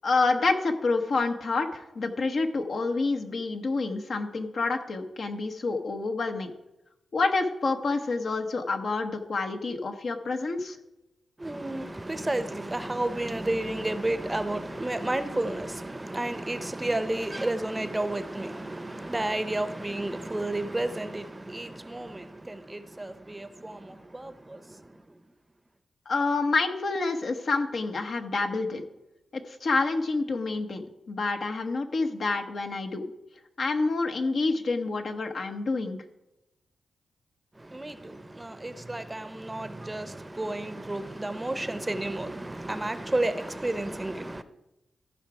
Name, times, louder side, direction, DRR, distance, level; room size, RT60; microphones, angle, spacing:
voice 1, 0.0-6.5 7.1-10.8 26.1-28.8 29.3-33.1 33.6-36.0, left 3 dB, 65° left, 1.1 m, -28 dB
voice 2, 11.4-25.2 37.5-44.4, right 1 dB, 20° right, 0.7 m, -32 dB
14.5 x 5.1 x 4.8 m
cardioid pair, 55°, 0 cm